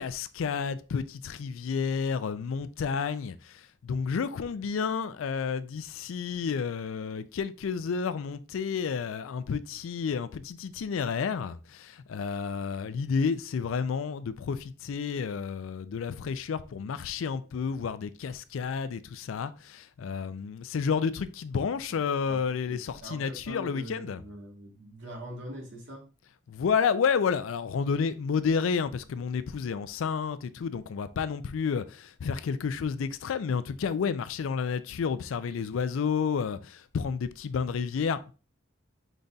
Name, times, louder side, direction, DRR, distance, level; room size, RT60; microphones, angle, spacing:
voice 1, 0.0-24.2 26.5-38.3, left 6 dB, 85° left, 0.4 m, -30 dB
voice 2, 22.7-26.0, right 1 dB, 65° right, 1.4 m, -43 dB
5.1 x 4.0 x 2.3 m
head